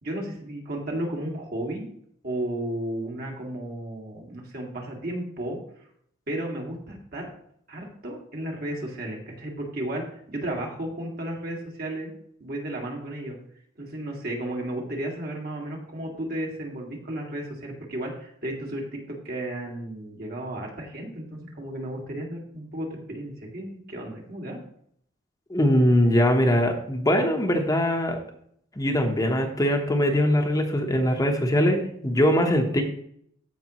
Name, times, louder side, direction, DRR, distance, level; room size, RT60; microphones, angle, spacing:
voice 1, 0.0-1.9 2.2-5.9 6.3-7.3 7.7-12.1 12.4-13.4 13.8-24.6, right 1 dB, 55° right, 0 dB, 2.0 m, -33 dB
voice 2, 25.5-28.2 28.8-32.9, equal, 20° left, 3 dB, 0.9 m, -22 dB
15.0 x 5.2 x 3.0 m, 0.67 s
head